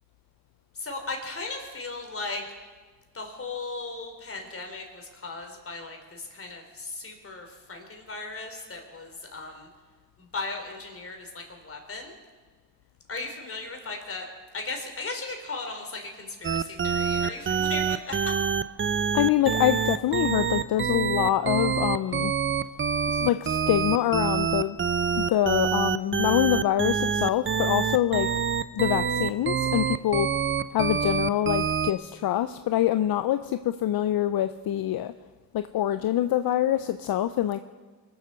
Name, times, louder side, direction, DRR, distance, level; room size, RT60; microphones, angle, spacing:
voice 1, 0.7-2.4 3.1-9.7 10.2-12.2 13.1-14.2 14.5-18.3, left 3 dB, 35° left, 3 dB, 3.6 m, -37 dB
sound 1, 16.4-31.9, right 6 dB, 30° right, 0.7 m, -26 dB
voice 2, 19.1-22.3 23.1-24.8 25.2-28.3 28.7-30.3 30.7-35.1 35.5-37.6, left 12 dB, 70° left, 11 dB, 0.6 m, -25 dB
23.0 x 7.9 x 6.8 m, 1.4 s
cardioid pair, 80°, 38 cm